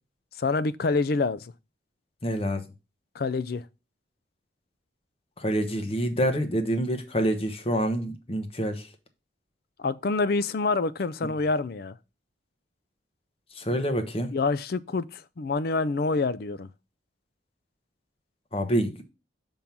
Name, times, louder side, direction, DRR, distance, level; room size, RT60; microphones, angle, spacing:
voice 1, 0.4-1.5 3.1-3.6 9.8-12.0 14.3-16.7, left 3 dB, 55° left, 0.4 m, -27 dB
voice 2, 2.2-2.7 5.4-8.9 13.6-14.3 18.5-19.0, equal, 30° left, 1.0 m, -27 dB
7.0 x 3.7 x 5.9 m
head